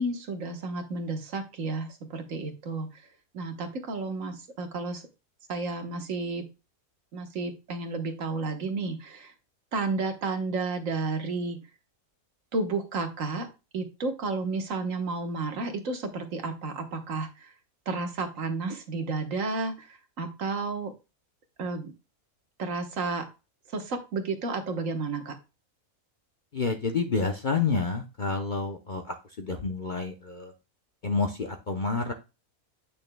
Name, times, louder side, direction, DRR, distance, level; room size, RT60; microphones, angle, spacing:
voice 1, 0.0-3.0 3.3-5.0 5.5-6.4 7.1-9.3 9.7-11.6 12.5-13.5 13.7-17.5 17.9-20.9 21.6-21.9 22.6-23.3 23.7-25.4, right 3 dB, 65° right, 6 dB, 1.5 m, -32 dB
voice 2, 26.5-30.5 31.0-32.1, left 4 dB, 45° left, 4 dB, 0.7 m, -29 dB
8.7 x 6.3 x 2.2 m, 0.28 s
omnidirectional pair, 1.5 m